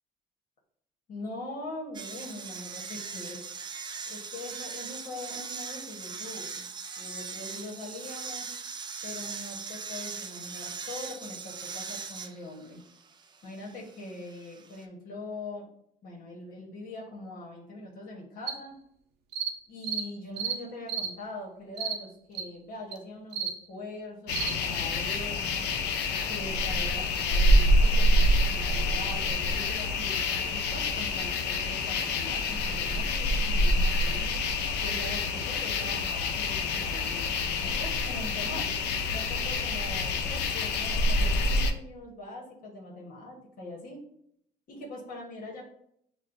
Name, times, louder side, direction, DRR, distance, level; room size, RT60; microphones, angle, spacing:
voice 1, 1.1-3.4 4.0-6.6 7.0-8.5 9.0-12.8 13.4-15.6 16.0-18.8 19.7-25.7 26.3-34.4 34.8-38.7 39.1-44.0 44.7-45.7, left 2 dB, 55° left, -3 dB, 1.1 m, -42 dB
sound 1, 1.9-14.8, right 5 dB, 25° right, 0.4 m, -40 dB
sound 2, 18.5-18.6 19.3-19.5 19.8-20.1 20.4-20.6 20.9-21.1 21.8-22.0 22.3-22.4 22.9-23.0 23.3-23.5 24.3-24.5, right 7 dB, 85° right, 0.6 m, -32 dB
sound 3, 24.3-41.7, left 1 dB, 80° left, 0.5 m, -27 dB
6.3 x 2.1 x 2.6 m, 0.71 s
cardioid pair, 110°, 17 cm